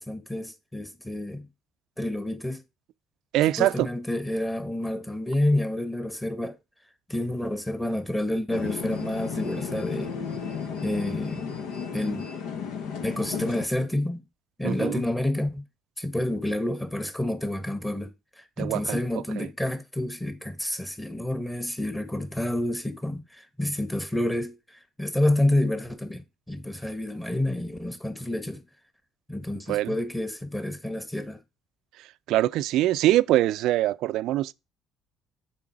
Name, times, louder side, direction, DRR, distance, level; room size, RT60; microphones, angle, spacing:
voice 1, 0.0-1.5 2.0-2.6 3.6-6.5 7.1-10.1 10.8-11.5 11.9-12.3 13.0-14.2 14.6-15.6 16.0-28.6 29.3-31.4, left 1 dB, 10° left, 1.7 m, -29 dB
voice 2, 3.3-3.9 14.6-15.0 18.6-19.0 19.4-19.5 29.7-29.9 32.3-34.5, right 14 dB, 70° right, 0.4 m, -23 dB
sound 1, 8.5-13.7, left 6 dB, 75° left, 1.3 m, -33 dB
7.1 x 4.9 x 4.7 m
hypercardioid pair, 60°, 0 cm